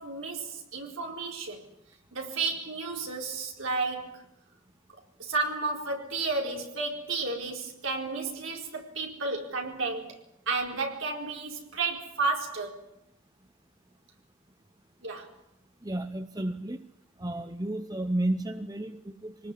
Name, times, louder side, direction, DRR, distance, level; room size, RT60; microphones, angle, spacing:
voice 1, 0.0-1.6 2.1-4.2 5.2-10.1 10.5-12.8 15.0-15.3, right 3 dB, 65° right, 1 dB, 4.4 m, -32 dB
voice 2, 15.8-16.9 17.2-19.5, right 1 dB, 15° right, 8 dB, 0.8 m, -32 dB
24.5 x 19.0 x 8.6 m, 0.81 s
head